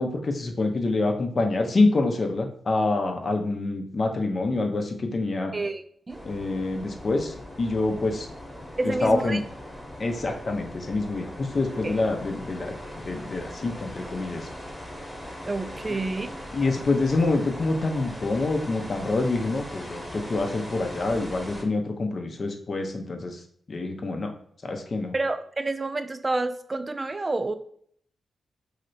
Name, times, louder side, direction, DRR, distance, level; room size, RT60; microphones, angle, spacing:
voice 1, 0.0-5.5 6.2-8.3 8.8-9.4 10.0-12.7 13.0-14.5 15.9-16.0 16.5-23.4 23.7-24.3 24.6-25.1, left 3 dB, 50° left, 3 dB, 0.6 m, -26 dB
voice 2, 5.5-6.3 8.8-9.4 11.8-11.9 15.5-16.4 25.1-27.6, right 2 dB, 30° right, 10 dB, 0.3 m, -29 dB
sound 1, 6.1-21.6, left 1 dB, ahead, 1.0 m, -40 dB
3.1 x 2.8 x 2.6 m, 0.63 s
cardioid pair, 60°, 0 cm